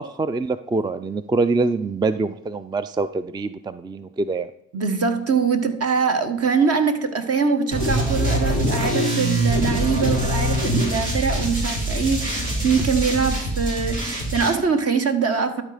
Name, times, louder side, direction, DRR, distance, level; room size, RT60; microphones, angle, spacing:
voice 1, 0.0-4.5, right 3 dB, 15° right, 13 dB, 0.4 m, -24 dB
voice 2, 4.7-15.6, right 5 dB, 50° right, 7 dB, 1.2 m, -23 dB
sound 1, 7.7-14.5, right 1 dB, 75° right, 2.8 m, -23 dB
11.5 x 4.3 x 4.9 m, 0.76 s
supercardioid pair, 55°, 31 cm